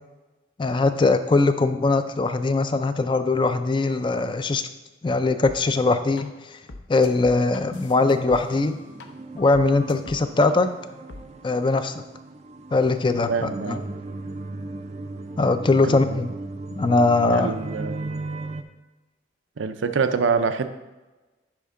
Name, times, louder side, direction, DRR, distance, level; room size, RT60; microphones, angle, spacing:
voice 1, 0.6-4.6 5.0-6.6 6.9-8.8 9.3-10.7 11.4-12.0 12.7-13.8 15.4-16.3 16.7-17.5, left 3 dB, 25° left, 9 dB, 0.4 m, -21 dB
sound 1, 5.4-5.6 6.2-6.3 6.7-9.0 9.3-10.5 11.1-11.2, left 2 dB, 75° left, 0.7 m, -42 dB
sound 2, 8.4-18.6, right 2 dB, 35° right, 0.5 m, -37 dB
voice 2, 13.3-13.8 15.9-16.2 17.3-18.3 19.6-20.7, right 5 dB, 90° right, 9 dB, 0.5 m, -26 dB
11.0 x 4.3 x 3.7 m, 1.1 s
head